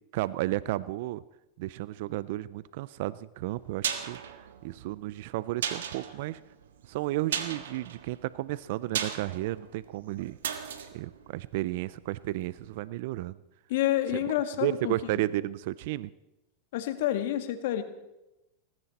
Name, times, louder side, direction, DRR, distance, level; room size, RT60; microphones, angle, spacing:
voice 1, 0.1-1.2 1.6-6.4 6.8-10.4 10.9-13.4 14.6-16.1, right 16 dB, 65° right, 18 dB, 0.4 m, -33 dB
sound 1, 3.4-12.3 12.6-12.7, right 8 dB, 85° right, 1.5 m, -37 dB
voice 2, 13.7-15.2 16.7-17.8, left 13 dB, 70° left, 9 dB, 1.6 m, -29 dB
19.0 x 16.0 x 4.2 m, 0.95 s
hypercardioid pair, 120°, 0 cm